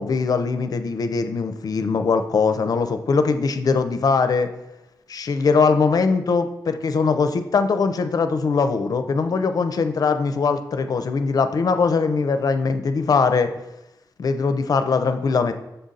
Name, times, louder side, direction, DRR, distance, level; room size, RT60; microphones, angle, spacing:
voice 1, 0.0-4.5 5.1-13.5 14.2-15.5, left 4 dB, 55° left, 9 dB, 0.5 m, -21 dB
6.8 x 3.8 x 4.1 m, 0.92 s
wide cardioid pair, 155°, 8 cm